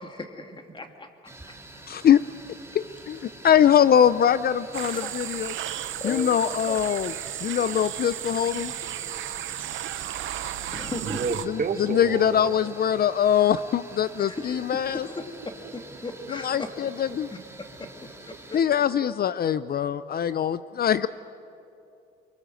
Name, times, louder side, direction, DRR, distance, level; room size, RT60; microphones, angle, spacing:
voice 1, 0.0-1.1 4.8-5.2 6.0-6.8 10.7-11.2 14.2-15.3 15.7-16.7 17.3-17.7 18.2-18.6, left 3 dB, 25° left, 5 dB, 2.4 m, -37 dB
sound 1, 1.2-18.6, right 2 dB, 10° right, 2.6 m, -46 dB
voice 2, 1.9-2.2 2.7-3.2 3.4-5.5 6.0-7.1 7.4-8.7 11.9-15.1 16.3-17.3 18.5-21.1, left 9 dB, 50° left, 15 dB, 0.5 m, -22 dB
sound 2, 4.7-11.5, right 12 dB, 80° right, 0.9 m, -34 dB
voice 3, 11.0-12.6 19.0-19.2 19.7-20.5 20.7-20.8, right 4 dB, 50° right, 6 dB, 2.0 m, -33 dB
24.0 x 23.5 x 7.8 m, 2.8 s
cardioid pair, 90°, 20 cm